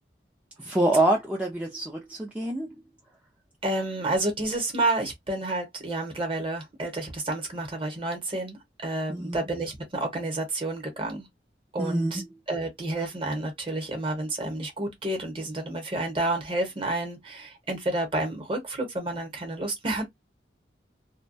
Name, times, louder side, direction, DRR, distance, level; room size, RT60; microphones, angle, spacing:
voice 1, 0.7-2.7 9.1-9.4 11.8-12.1, right 1 dB, 10° right, 0.4 m, -25 dB
voice 2, 3.6-11.2 11.7-20.1, right 2 dB, 30° right, 0.9 m, -30 dB
2.2 x 2.1 x 2.6 m
head